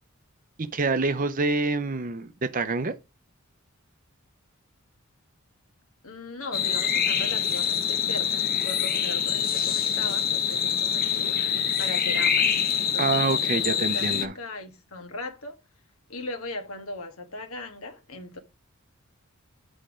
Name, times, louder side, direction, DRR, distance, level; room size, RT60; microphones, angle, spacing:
voice 1, 0.6-2.9 13.0-14.3, right 3 dB, 40° right, 0.7 m, -26 dB
voice 2, 6.0-11.4 11.8-15.6 16.1-18.4, left 2 dB, 75° left, 1.5 m, -38 dB
sound 1, 6.5-14.3, left 8 dB, 40° left, 0.8 m, -25 dB
8.8 x 4.4 x 5.0 m
head